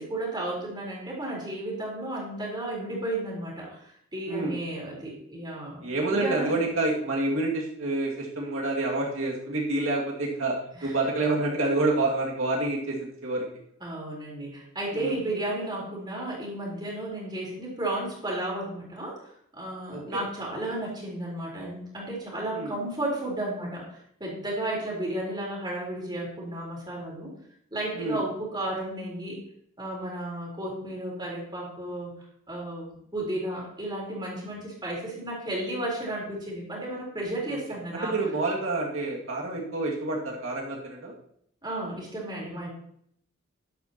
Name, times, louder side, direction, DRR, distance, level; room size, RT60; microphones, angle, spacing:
voice 1, 0.0-6.6 10.7-11.0 13.8-27.3 27.7-29.4 29.8-38.2 41.6-42.7, right 1 dB, 20° right, -3 dB, 4.0 m, -33 dB
voice 2, 4.3-4.6 5.8-10.6 10.8-13.4 14.9-15.2 19.9-20.2 22.5-22.7 27.9-28.2 37.5-37.6 37.9-41.1, right 2 dB, 75° right, -2 dB, 2.3 m, -28 dB
12.0 x 11.0 x 3.0 m, 0.69 s
head